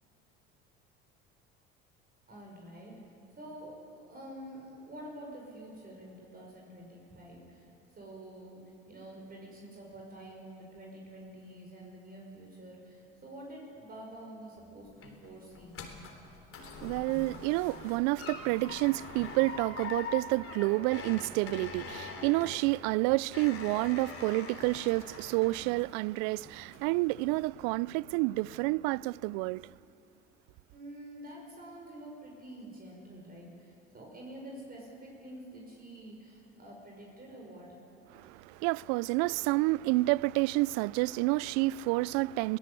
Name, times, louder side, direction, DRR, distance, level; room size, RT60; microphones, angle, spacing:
voice 1, 2.3-8.6 8.9-15.8 30.7-37.8, right 1 dB, 30° right, 5.8 m, -48 dB
sound 1, 14.6-26.1 26.5-27.0 27.4-27.5, left 5 dB, 50° left, 3.7 m, -44 dB
voice 2, 16.8-29.7 38.1-42.6, right 21 dB, 70° right, 0.4 m, -29 dB
22.5 x 17.0 x 8.3 m
hypercardioid pair, 75°, 29 cm